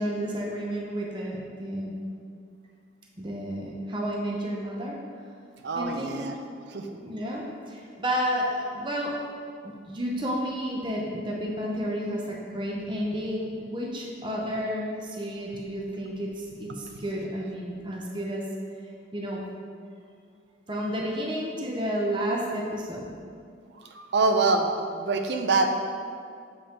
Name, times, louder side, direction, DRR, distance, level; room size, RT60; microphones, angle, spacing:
voice 1, 0.0-1.9 3.2-5.0 5.7-6.2 6.9-9.2 9.6-18.4 19.1-19.4 20.7-23.1, equal, 25° right, -2 dB, 0.6 m, -31 dB
voice 2, 5.6-6.4 6.7-6.9 23.9-24.7 24.9-25.8, right 3 dB, 70° right, 5 dB, 0.5 m, -24 dB
7.1 x 5.3 x 2.9 m, 2.2 s
head